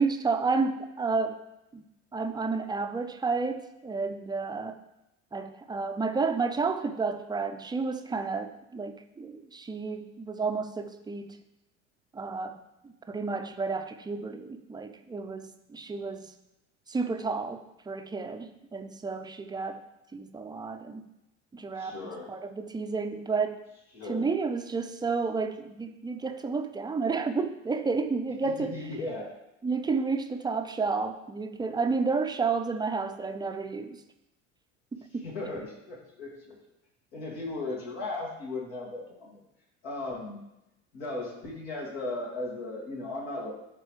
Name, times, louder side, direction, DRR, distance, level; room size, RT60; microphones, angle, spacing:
voice 1, 0.0-1.4 1.7-1.8 2.1-4.8 5.3-11.4 12.1-12.6 12.8-16.3 16.9-19.8 20.1-21.0 21.5-22.0 22.3-23.6 24.1-28.9 29.6-34.0 34.9-35.2, right 4 dB, 10° right, 7 dB, 0.6 m, -31 dB
voice 2, 21.8-22.3 23.9-24.3 28.4-29.4 35.2-36.6 37.1-39.4 39.8-40.5 40.9-43.5, left 2 dB, 65° left, -2 dB, 2.2 m, -36 dB
11.0 x 4.1 x 3.2 m, 0.88 s
figure-of-eight pair, 65°, 37 cm